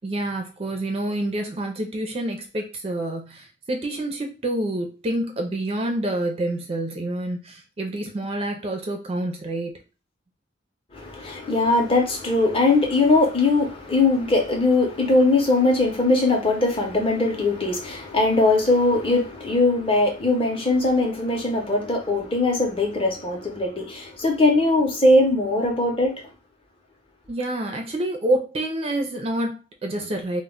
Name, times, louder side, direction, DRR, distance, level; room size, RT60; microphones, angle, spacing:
voice 1, 0.0-9.8 27.3-30.4, right 1 dB, 30° right, 0.4 m, -27 dB
voice 2, 11.0-26.2, left 2 dB, 30° left, 0.6 m, -20 dB
2.1 x 2.0 x 3.6 m
head